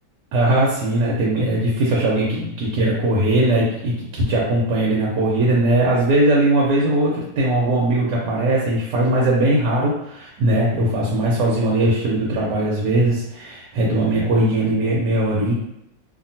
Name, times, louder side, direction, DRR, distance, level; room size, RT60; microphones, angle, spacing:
voice 1, 0.3-15.5, right 1 dB, 85° right, -4 dB, 1.2 m, -19 dB
2.8 x 2.4 x 2.7 m, 0.82 s
omnidirectional pair, 1.8 m